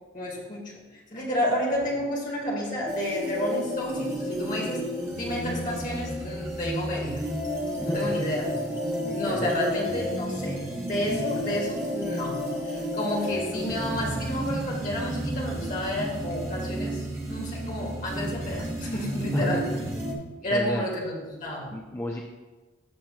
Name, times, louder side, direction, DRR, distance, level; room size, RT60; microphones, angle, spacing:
voice 1, 0.1-0.8 1.1-7.2 7.9-8.5 9.1-19.7 20.4-21.7, equal, 40° left, -3 dB, 2.0 m, -30 dB
sound 1, 2.9-20.1, equal, 15° right, 1.0 m, -32 dB
voice 2, 7.9-9.6 19.3-20.2 20.5-20.9 21.7-22.2, left 1 dB, 10° left, 0 dB, 0.4 m, -33 dB
15.0 x 5.9 x 2.4 m, 1.2 s
head